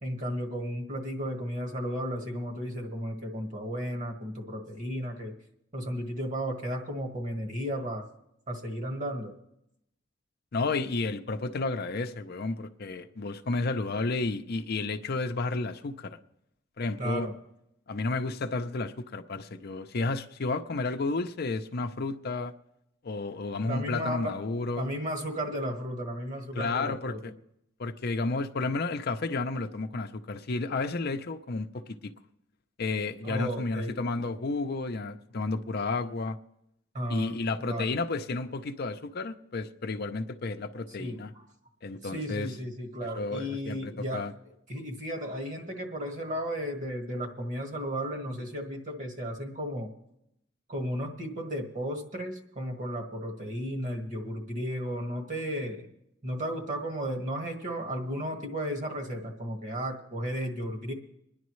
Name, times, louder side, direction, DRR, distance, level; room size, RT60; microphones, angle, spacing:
voice 1, 0.0-5.3 5.7-8.1 8.5-9.3 17.0-17.3 23.6-24.4 24.8-27.3 33.2-33.9 36.9-37.4 37.6-38.0 41.0-41.5 42.0-44.3 44.7-49.9 50.7-55.9 56.2-60.9, equal, 40° right, 1.7 m, -34 dB
voice 2, 10.5-16.2 16.8-17.3 17.9-22.5 23.0-24.9 26.5-27.3 27.8-32.1 32.8-36.4 37.1-41.3 41.8-42.5 43.1-44.3, left 3 dB, 55° left, 0.6 m, -32 dB
25.5 x 10.5 x 3.1 m
head